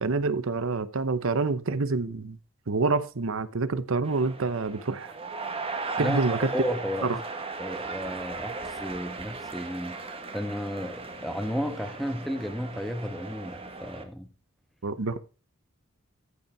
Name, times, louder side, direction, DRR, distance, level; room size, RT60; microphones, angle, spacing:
voice 1, 0.0-2.4 2.7-5.1 6.0-6.5 7.0-7.2 14.8-15.2, right 3 dB, 65° right, 0.8 m, -27 dB
sound 1, 4.0-14.0, right 3 dB, 25° right, 1.4 m, -37 dB
voice 2, 6.0-7.2 7.6-10.0 10.3-14.3, equal, ahead, 1.1 m, -33 dB
14.0 x 5.5 x 4.7 m
head